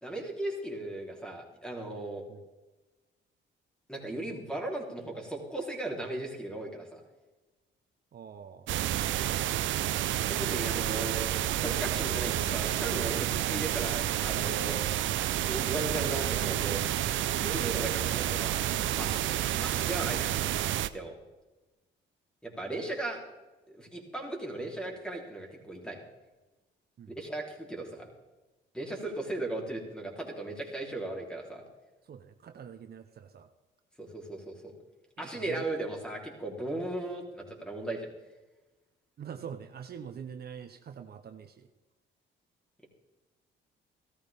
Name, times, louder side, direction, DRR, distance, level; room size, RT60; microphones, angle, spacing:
voice 1, 0.0-2.2 3.9-7.0 10.3-14.8 15.4-16.8 17.4-18.6 18.9-20.3 20.9-21.1 22.4-23.2 23.7-26.0 27.1-28.1 28.7-31.6 34.0-34.7 35.2-38.1, right 2 dB, 5° left, 0 dB, 3.6 m, -37 dB
voice 2, 8.1-8.7 15.7-15.9 27.0-27.1 32.1-33.5 35.5-35.7 39.2-41.7, right 7 dB, 50° right, 7 dB, 0.9 m, -44 dB
sound 1, 8.7-20.9, right 12 dB, 75° right, 0.6 m, -30 dB
16.0 x 13.0 x 3.6 m, 1.1 s
cardioid pair, 90°, 20 cm